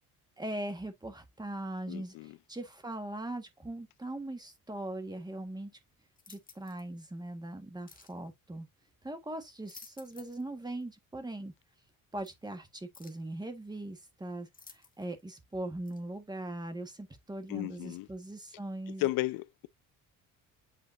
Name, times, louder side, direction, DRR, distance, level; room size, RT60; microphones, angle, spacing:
voice 1, 0.4-5.7 6.3-8.7 9.0-11.5 12.1-19.1, right 1 dB, 10° right, 1.6 m, -40 dB
voice 2, 1.9-2.4 17.5-18.1 19.0-19.7, left 17 dB, 80° left, 0.5 m, -34 dB
sound 1, 6.2-6.9 7.9-8.2 9.4-10.5 10.8-10.9 12.2-12.3 12.9-13.3 14.5-15.2 15.9-16.0, left 5 dB, 25° left, 1.4 m, -54 dB
8.4 x 4.4 x 2.7 m
cardioid pair, 130°, 34 cm